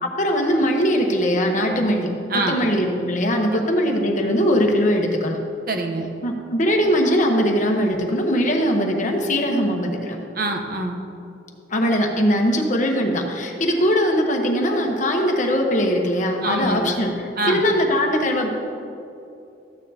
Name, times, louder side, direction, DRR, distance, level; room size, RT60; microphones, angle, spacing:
voice 1, 0.0-2.1 2.5-5.4 6.2-10.2 11.7-17.1 17.5-18.5, equal, 40° left, 2 dB, 1.1 m, -20 dB
voice 2, 5.7-6.1 10.3-11.1 16.4-17.0 17.3-17.6, right 2 dB, 50° right, 3 dB, 0.9 m, -25 dB
14.0 x 9.0 x 2.8 m, 2.7 s
head